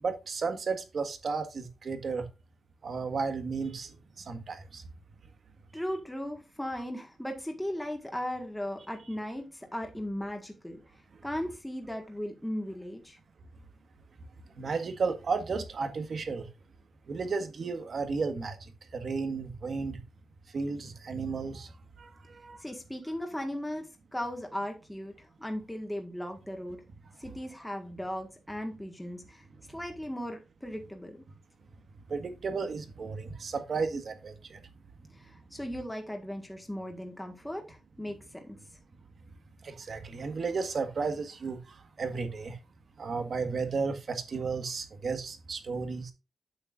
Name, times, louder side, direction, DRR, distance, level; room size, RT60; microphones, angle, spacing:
voice 1, 0.0-2.2 2.8-4.8 14.5-16.5 17.1-20.0 20.5-22.6 32.1-34.6 39.6-42.6 43.0-46.1, right 4 dB, 55° right, 1.6 m, -33 dB
voice 2, 5.7-10.8 11.2-13.2 22.6-26.8 27.2-31.2 35.2-38.6, equal, 5° left, 1.7 m, -37 dB
8.6 x 8.3 x 2.6 m
wide cardioid pair, 130°, 0 cm